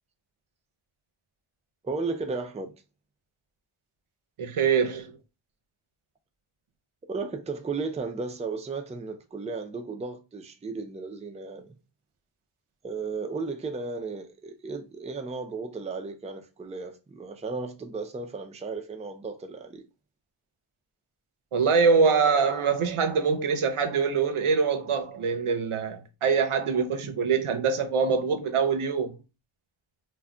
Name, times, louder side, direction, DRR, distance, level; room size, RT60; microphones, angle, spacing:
voice 1, 1.8-2.7 7.0-11.7 12.8-19.8, right 4 dB, 15° right, 0.4 m, -34 dB
voice 2, 4.4-5.2 21.5-29.1, right 5 dB, 80° right, 0.6 m, -24 dB
2.2 x 2.2 x 3.6 m
wide cardioid pair, 50°, 50 cm